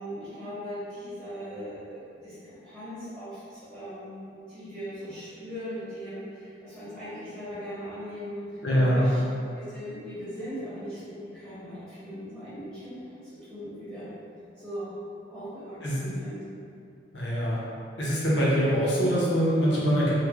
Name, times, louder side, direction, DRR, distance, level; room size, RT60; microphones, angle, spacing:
voice 1, 0.0-9.2 9.5-14.1 14.5-15.0 15.2-16.4, equal, 5° right, -14 dB, 0.8 m, -39 dB
voice 2, 8.6-9.1 15.8-16.0 17.1-17.6 18.0-20.1, equal, 70° left, -7 dB, 0.8 m, -23 dB
3.2 x 2.2 x 3.5 m, 2.5 s
head